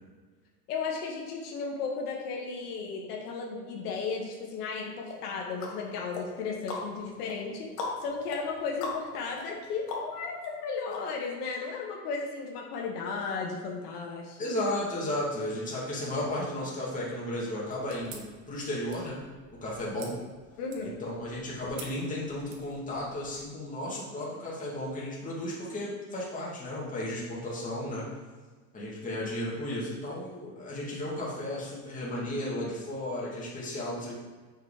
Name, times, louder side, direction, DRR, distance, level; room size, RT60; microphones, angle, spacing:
voice 1, 0.7-7.7 8.0-14.4 20.6-21.0, left 4 dB, 75° left, -1 dB, 1.7 m, -35 dB
sound 1, 5.1-10.5 10.9-11.0, left 3 dB, 90° left, 2.3 m, -39 dB
voice 2, 14.4-19.2 19.6-20.2 20.8-28.1 28.7-34.1, left 1 dB, 15° left, -6 dB, 2.4 m, -34 dB
sound 2, 17.7-23.4, right 5 dB, 60° right, 1.5 m, -51 dB
6.4 x 5.2 x 5.0 m, 1.4 s
supercardioid pair, 130°, 47 cm